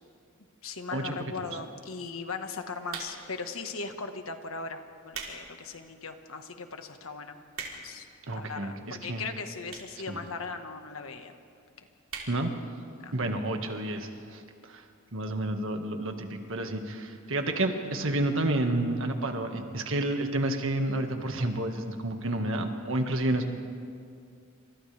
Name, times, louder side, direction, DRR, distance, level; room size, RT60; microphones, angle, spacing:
voice 1, 0.6-7.4 7.8-8.0 8.3-11.3 13.0-13.1, left 4 dB, 80° left, 6 dB, 1.5 m, -38 dB
sound 1, 2.9-3.4 4.1-4.3 4.9-5.4 5.8-5.9 6.5-6.6 6.8-6.9 7.2-8.0 8.8-8.9 9.7-10.0 10.3-10.4 10.6-10.7 10.9-11.0 11.3-11.6 12.0-12.3 12.7-12.8 13.0-13.1, right 5 dB, 85° right, 3.7 m, -39 dB
voice 2, 8.3-9.2 10.1-10.2 12.3-12.5 13.1-14.8 15.1-23.5, right 1 dB, 65° right, 4 dB, 1.8 m, -30 dB
29.0 x 26.5 x 3.5 m, 2.3 s
head